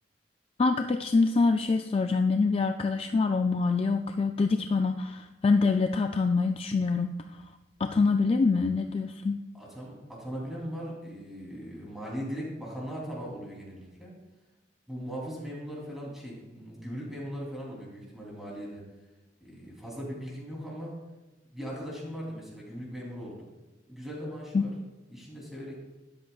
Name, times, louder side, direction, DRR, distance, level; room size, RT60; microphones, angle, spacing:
voice 1, 0.6-7.2 7.8-9.4 24.5-24.6, left 4 dB, 30° left, 6 dB, 0.3 m, -25 dB
voice 2, 9.5-14.1 14.9-18.8 19.4-21.0 21.5-23.5 23.9-24.7 25.1-25.8, equal, ahead, -5 dB, 3.1 m, -39 dB
12.5 x 10.5 x 2.4 m, 1.1 s
head